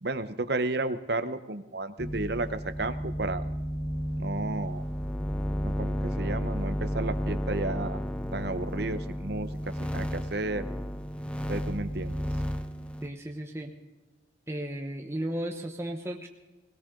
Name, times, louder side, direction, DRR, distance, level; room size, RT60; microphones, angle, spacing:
voice 1, 0.0-3.4 4.2-4.8 5.6-8.0 8.3-10.7 11.5-12.2, right 2 dB, 55° right, 11 dB, 0.9 m, -32 dB
sound 1, 2.0-13.1, equal, 5° left, 0.7 m, -32 dB
voice 2, 13.0-13.7 14.5-16.3, right 1 dB, 15° right, 2 dB, 1.0 m, -34 dB
20.5 x 17.0 x 3.8 m, 1.1 s
head